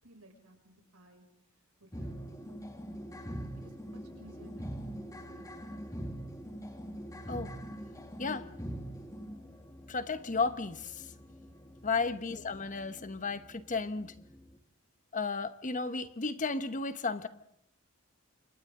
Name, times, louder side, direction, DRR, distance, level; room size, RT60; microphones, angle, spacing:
voice 1, 0.0-2.6 3.5-5.9, right 1 dB, 80° right, 6.2 m, -58 dB
sound 1, 1.9-14.6, equal, 15° left, 1.9 m, -44 dB
voice 2, 9.9-11.0 11.8-14.1 15.1-17.3, left 4 dB, 35° left, 1.1 m, -33 dB
29.5 x 27.0 x 3.8 m
head